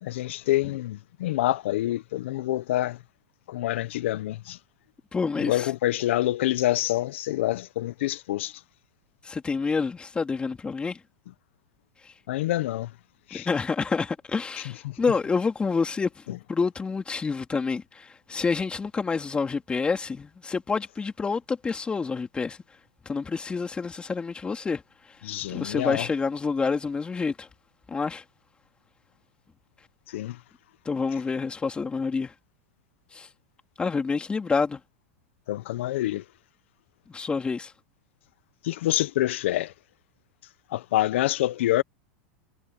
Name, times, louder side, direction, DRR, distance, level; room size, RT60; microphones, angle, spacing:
voice 1, 0.0-3.0 3.5-4.6 5.4-8.6 12.3-12.9 13.3-13.5 14.9-15.0 25.2-26.0 30.1-30.4 35.5-36.2 38.6-39.7 40.7-41.8, left 15 dB, 75° left, 0.9 m, -26 dB
voice 2, 5.1-5.7 9.2-11.0 12.0-12.1 13.3-22.8 23.0-27.5 27.9-28.2 30.8-32.3 33.1-33.3 33.8-34.8 37.1-37.7, left 4 dB, 15° left, 3.2 m, -28 dB
hypercardioid pair, 125°, 7 cm